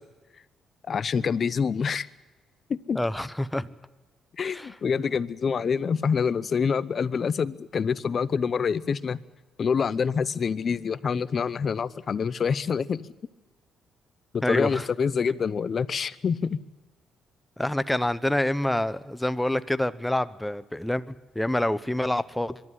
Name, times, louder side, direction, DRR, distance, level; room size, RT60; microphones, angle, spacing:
voice 1, 0.9-2.1 2.7-3.0 4.4-9.2 9.6-13.1 14.3-16.6, left 6 dB, 45° left, 17 dB, 0.8 m, -26 dB
voice 2, 2.9-3.7 4.4-4.7 14.4-14.9 17.6-22.6, left 1 dB, 5° left, 14 dB, 0.8 m, -27 dB
23.0 x 12.5 x 9.8 m, 1.2 s
cardioid pair, 90°, 0 cm